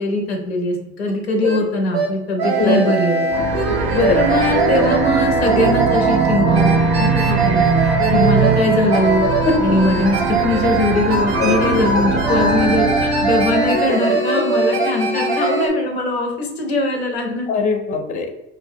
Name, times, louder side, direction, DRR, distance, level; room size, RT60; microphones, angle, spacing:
voice 1, 0.0-3.4 4.0-6.7 7.0-9.2 9.6-17.6, left 2 dB, 90° left, 2 dB, 0.5 m, -21 dB
sound 1, 1.1-1.2 1.4-1.6 1.9-2.1 2.4-15.7, right 3 dB, 90° right, 0.6 m, -20 dB
sound 2, 3.3-13.9, right 5 dB, 40° right, 0.4 m, -21 dB
voice 2, 3.5-4.2 9.5-9.6 11.4-11.6 15.4-15.5 17.5-18.4, left 4 dB, 25° left, 5 dB, 0.4 m, -21 dB
2.4 x 2.1 x 2.6 m, 0.94 s
hypercardioid pair, 65°, 31 cm